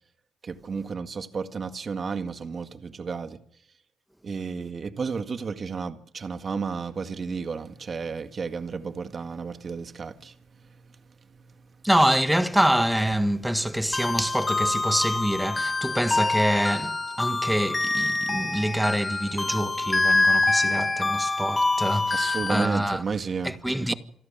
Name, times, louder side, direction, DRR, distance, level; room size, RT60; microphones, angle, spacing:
voice 1, 0.4-3.4 4.2-11.0 11.3-11.7 22.1-23.6, right 5 dB, 40° right, 1.8 m, -33 dB
voice 2, 11.8-23.0 23.4-23.9, equal, 5° right, 1.5 m, -25 dB
sound 1, 13.9-22.7, left 3 dB, 20° left, 1.8 m, -25 dB
28.0 x 11.5 x 8.8 m
cardioid pair, 90°, 0 cm